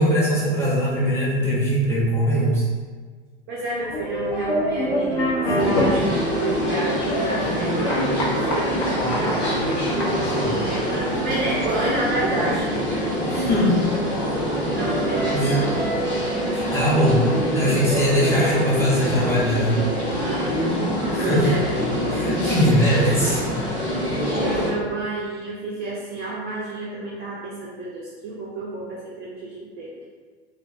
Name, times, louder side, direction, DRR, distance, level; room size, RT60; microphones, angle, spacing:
voice 1, 0.0-2.6 10.2-10.5 13.3-13.8 15.3-15.6 16.7-17.2 17.5-19.8 21.1-21.5 22.1-23.4, equal, 10° left, -8 dB, 0.7 m, -21 dB
voice 2, 3.5-7.7 8.3-8.8 9.2-9.9 10.3-12.7 14.8-15.6 16.2-16.6 20.2-20.5 21.0-21.7 24.3-30.0, right 2 dB, 35° right, -5 dB, 0.4 m, -30 dB
sound 1, 3.8-16.5, left 1 dB, 65° left, 0.6 m, -29 dB
sound 2, 4.8-7.7 9.0-13.5 14.8-16.0, right 2 dB, 80° right, 0.6 m, -34 dB
sound 3, 5.6-24.7, equal, 90° left, 1.2 m, -25 dB
2.4 x 2.2 x 2.4 m, 1.5 s
figure-of-eight pair, 85°, 32 cm